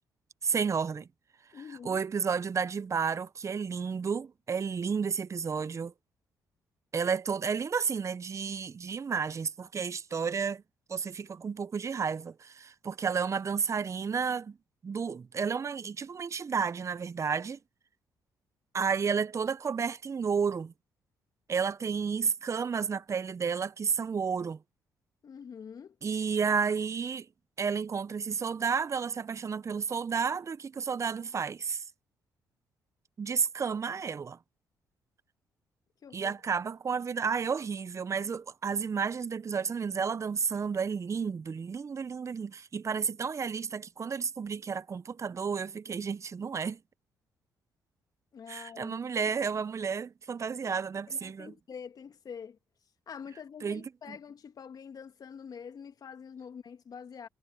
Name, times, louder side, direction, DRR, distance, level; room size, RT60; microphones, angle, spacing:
voice 1, 0.4-1.1 1.8-5.9 6.9-10.6 10.9-14.6 14.8-17.6 18.7-20.7 21.5-24.6 26.0-27.3 27.6-31.8 33.2-34.4 36.1-46.8 48.5-51.5 53.6-54.2, right 6 dB, 40° right, 0.8 m, -31 dB
voice 2, 1.5-2.0 25.2-26.0 36.0-36.3 48.3-49.0 50.7-50.8 51.1-52.6 53.1-57.3, left 7 dB, 55° left, 2.2 m, -45 dB
supercardioid pair, 55°, 8 cm